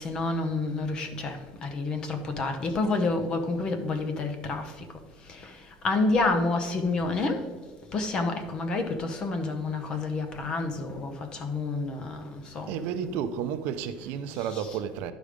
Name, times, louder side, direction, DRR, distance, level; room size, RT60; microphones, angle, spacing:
voice 1, 0.0-4.9 5.2-7.5 7.9-12.8 14.5-14.7, left 3 dB, 30° left, 0.8 m, -29 dB
voice 2, 12.7-15.1, right 8 dB, 60° right, 0.6 m, -32 dB
11.0 x 5.0 x 5.1 m
cardioid pair, 180°, 3 cm